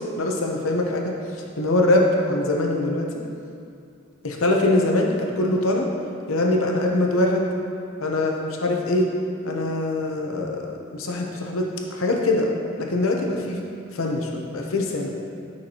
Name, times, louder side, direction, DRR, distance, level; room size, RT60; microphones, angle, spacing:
voice 1, 0.2-1.1 1.6-3.2 4.2-5.9 6.3-7.4 8.0-9.1 9.4-10.7 10.9-12.5 12.8-13.6 13.9-15.1, left 2 dB, 80° left, 1 dB, 0.8 m, -23 dB
9.1 x 5.9 x 2.9 m, 2.4 s
head